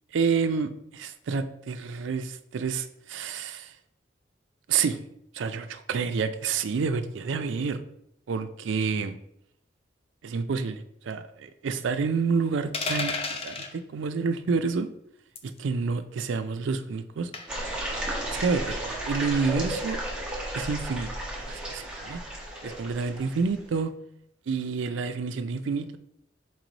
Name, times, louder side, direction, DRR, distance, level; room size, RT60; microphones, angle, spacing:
voice 1, 0.1-3.7 4.7-5.0 5.3-7.8 8.3-9.2 10.2-14.9 15.6-17.3 18.3-20.0 20.5-21.1 21.5-22.2 22.6-23.9 24.5-26.0, right 5 dB, 80° right, 10 dB, 0.4 m, -29 dB
sound 1, 12.7-13.7 15.3-15.6 17.3-17.7, left 3 dB, 30° left, 0.4 m, -31 dB
sound 2, 17.5-23.6, right 1 dB, 5° right, 0.8 m, -33 dB
4.3 x 3.1 x 3.9 m, 0.74 s
head